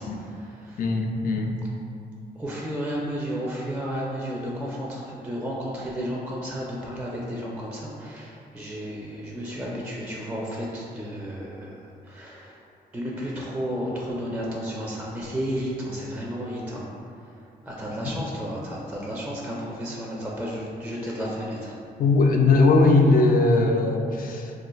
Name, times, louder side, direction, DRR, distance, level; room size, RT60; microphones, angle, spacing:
voice 1, 0.0-0.8 2.3-12.6 12.9-16.9 17.2-21.7, equal, 5° right, -4 dB, 0.4 m, -32 dB
voice 2, 0.8-1.6 22.0-24.5, left 3 dB, 60° left, 2 dB, 0.4 m, -19 dB
2.4 x 2.3 x 3.9 m, 2.5 s
cardioid pair, 100°, 16 cm